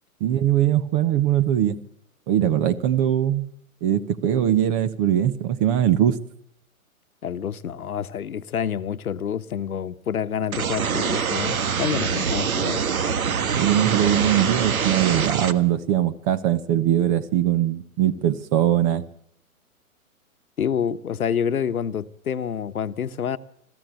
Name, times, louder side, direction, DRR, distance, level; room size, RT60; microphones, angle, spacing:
voice 1, 0.2-1.8 2.3-3.5 3.8-6.2 13.5-19.0, right 11 dB, 25° right, 0.8 m, -21 dB
voice 2, 7.2-12.8 20.6-23.4, left 8 dB, 80° left, 1.1 m, -28 dB
sound 1, 10.5-15.5, right 6 dB, 75° right, 1.5 m, -24 dB
21.0 x 14.0 x 9.1 m
hypercardioid pair, 135°, 43 cm